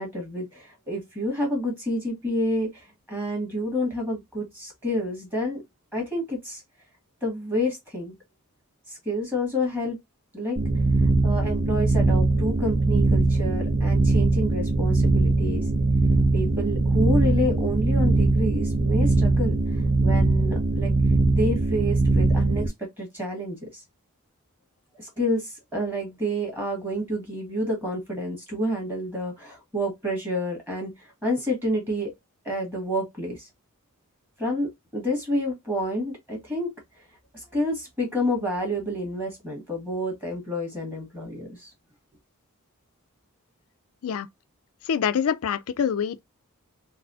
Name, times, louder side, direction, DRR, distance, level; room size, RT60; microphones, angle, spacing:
voice 1, 0.0-5.6 5.9-6.6 7.2-8.2 8.9-10.0 10.3-10.6 11.0-15.7 16.3-19.6 20.0-20.9 21.3-23.7 25.0-32.1 32.4-33.5 34.4-36.7 37.3-41.7, equal, 10° right, 1.4 m, -29 dB
sound 1, 10.6-22.7, right 2 dB, 45° right, 0.6 m, -21 dB
voice 2, 44.9-46.2, left 7 dB, 70° left, 0.4 m, -25 dB
4.0 x 2.0 x 2.6 m
head